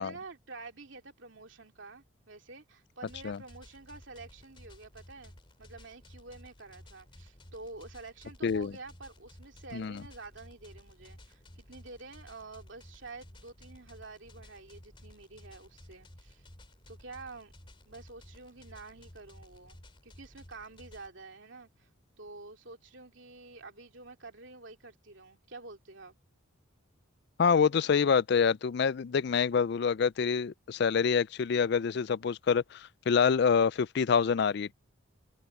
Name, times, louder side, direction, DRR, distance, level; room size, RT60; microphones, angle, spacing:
voice 1, 0.0-5.3 5.6-16.5 16.9-17.5 17.9-19.8 20.0-21.9 22.2-26.1, right 3 dB, 60° right, 2.7 m, -48 dB
sound 1, 3.0-21.1, left 1 dB, 25° left, 2.9 m, -54 dB
voice 2, 27.4-34.7, left 6 dB, 50° left, 0.3 m, -26 dB
open air
head